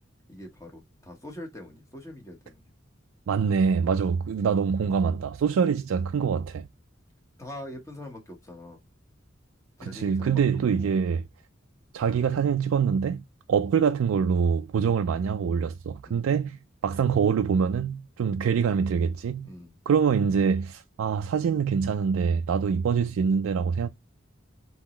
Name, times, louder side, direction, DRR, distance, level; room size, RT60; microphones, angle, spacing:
voice 1, 0.3-2.6 7.4-8.8 9.8-11.0 16.0-16.2 19.4-19.8, left 1 dB, 15° left, 1.2 m, -43 dB
voice 2, 3.3-6.7 9.8-11.2 11.9-13.2 13.5-19.5 19.9-23.9, right 6 dB, 85° right, 0.3 m, -25 dB
3.7 x 2.9 x 4.3 m
head